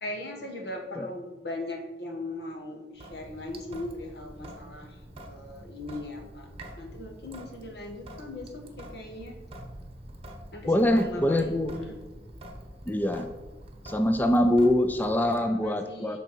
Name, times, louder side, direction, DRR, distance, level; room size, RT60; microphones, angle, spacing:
voice 1, 0.0-5.0 5.2-6.5 6.8-9.3 10.5-12.0 15.2-16.2, left 1 dB, 65° left, 1 dB, 1.6 m, -39 dB
Sink (filling or washing) / Drip, 3.0-15.4, right 1 dB, 35° right, 1.2 m, -46 dB
voice 2, 10.7-11.7 12.9-13.3 13.8-16.2, left 1 dB, 10° left, 6 dB, 0.4 m, -24 dB
7.9 x 4.6 x 6.1 m, 1.2 s
head